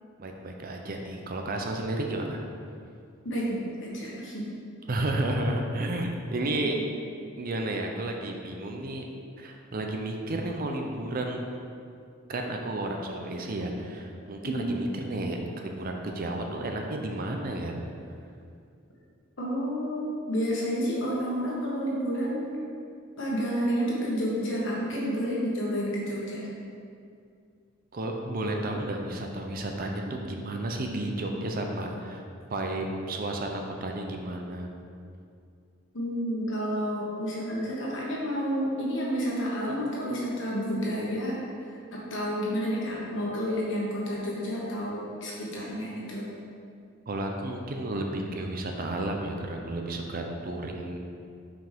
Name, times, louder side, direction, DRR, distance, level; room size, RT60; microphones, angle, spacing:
voice 1, 0.2-2.4 4.9-6.8 7.4-9.0 9.4-11.5 12.3-17.8 27.9-32.2 32.5-34.7 47.1-51.0, right 1 dB, 45° right, 2 dB, 0.5 m, -32 dB
voice 2, 3.2-4.4 6.5-6.8 14.4-14.8 19.4-22.5 23.2-26.5 35.9-41.3 41.9-46.3, equal, 65° left, -5 dB, 1.4 m, -30 dB
6.0 x 4.9 x 3.5 m, 2.4 s
head